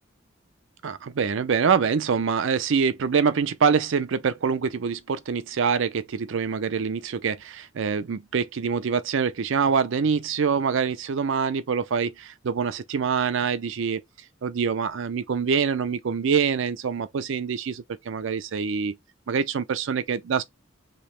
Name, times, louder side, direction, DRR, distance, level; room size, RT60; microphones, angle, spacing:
voice 1, 0.8-14.0 14.4-18.9 19.3-20.4, right 6 dB, 65° right, 0.5 m, -25 dB
3.1 x 2.8 x 3.1 m
head